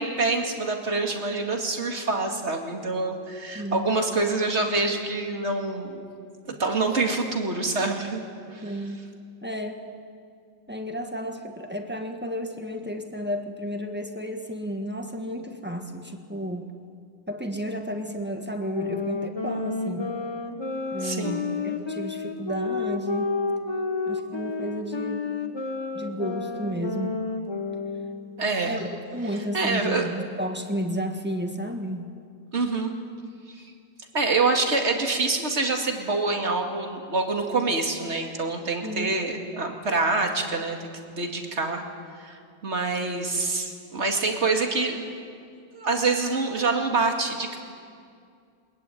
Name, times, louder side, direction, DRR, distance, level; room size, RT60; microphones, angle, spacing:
voice 1, 0.0-6.0 6.5-8.2 8.5-8.6 21.0-21.4 28.4-28.8 29.5-30.1 32.5-32.9 33.5-33.7 34.1-41.8 42.2-45.0 45.7-47.6, right 3 dB, 35° right, 3 dB, 2.5 m, -26 dB
voice 2, 3.5-3.8 8.6-9.0 9.4-9.9 10.7-16.7 17.3-20.1 20.9-23.3 24.0-25.3 25.9-27.2 28.6-32.1 38.8-39.2, equal, 5° right, 4 dB, 1.5 m, -32 dB
sound 1, 18.7-28.4, left 4 dB, 15° left, 1.0 m, -30 dB
21.0 x 20.5 x 9.2 m, 2.3 s
omnidirectional pair, 2.1 m